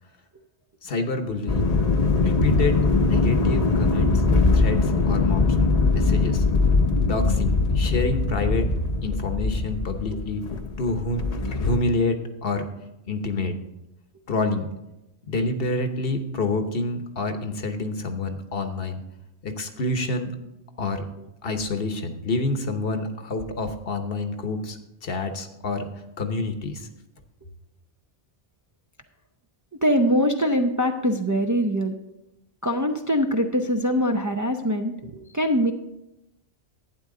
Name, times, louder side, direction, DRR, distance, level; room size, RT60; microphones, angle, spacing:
voice 1, 0.8-1.7 2.2-2.8 3.1-4.2 4.5-6.4 7.0-8.7 9.0-10.4 10.8-11.2 11.6-12.7 13.1-13.5 14.3-14.6 15.3-19.0 19.4-20.3 20.8-21.0 21.4-25.9 26.2-26.9, left 2 dB, 65° left, 7 dB, 1.1 m, -27 dB
sound 1, 1.5-11.8, left 3 dB, 40° left, 0.8 m, -21 dB
voice 2, 29.8-32.0 32.6-35.7, equal, 25° right, 3 dB, 0.5 m, -23 dB
11.5 x 9.2 x 3.7 m, 0.91 s
omnidirectional pair, 1.1 m